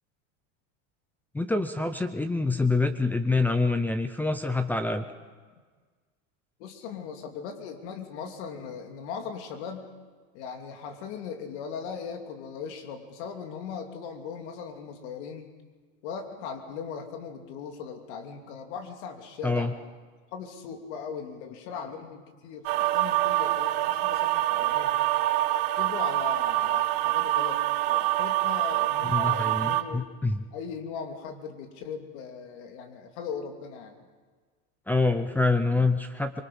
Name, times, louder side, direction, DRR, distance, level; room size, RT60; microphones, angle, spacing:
voice 1, 1.3-5.0 19.4-19.7 29.0-30.4 34.9-36.4, left 3 dB, 5° left, 9 dB, 0.6 m, -26 dB
voice 2, 6.6-9.9 10.3-15.5 16.0-19.7 20.3-25.0 25.7-30.1 30.5-33.9, left 6 dB, 65° left, 4 dB, 2.9 m, -39 dB
sound 1, 22.6-29.8, right 16 dB, 55° right, 1.4 m, -25 dB
25.0 x 24.0 x 5.5 m, 1.5 s
supercardioid pair, 160°, 36 cm